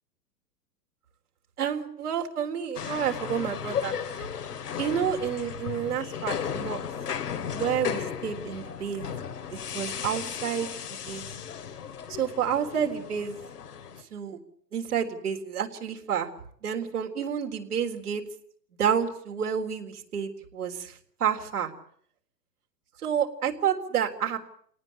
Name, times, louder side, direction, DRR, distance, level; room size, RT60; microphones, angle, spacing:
voice 1, 1.6-4.3 4.8-6.8 7.5-9.1 9.5-11.3 12.1-13.4 14.1-14.4 14.7-16.3 16.6-18.2 18.8-21.7 23.0-24.4, right 8 dB, 65° right, 3 dB, 4.0 m, -29 dB
sound 1, 2.7-14.0, left 8 dB, 70° left, 2.6 m, -35 dB
28.5 x 18.5 x 8.6 m, 0.65 s
figure-of-eight pair, 110°, 48 cm